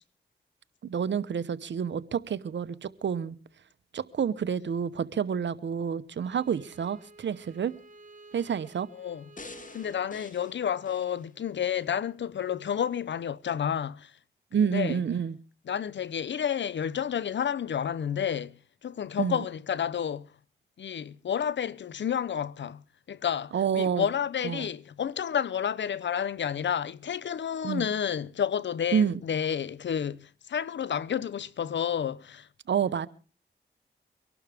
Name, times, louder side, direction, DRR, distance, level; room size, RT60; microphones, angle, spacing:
voice 1, 0.8-3.3 3.9-7.7 8.3-8.9 14.5-15.4 19.2-19.4 23.5-24.1 24.4-24.7 27.6-27.9 28.9-29.2 32.7-33.1, right 7 dB, 75° right, 1.0 m, -28 dB
Bowed string instrument, 6.1-11.1, right 2 dB, 45° right, 2.5 m, -54 dB
voice 2, 8.9-9.2 9.7-14.1 14.6-15.0 15.7-20.3 20.8-22.8 23.1-32.5, left 8 dB, 75° left, 0.7 m, -30 dB
sound 1, 9.4-11.9 12.4-12.5, left 3 dB, 45° left, 2.6 m, -48 dB
24.0 x 12.0 x 3.5 m
cardioid pair, 45°, 19 cm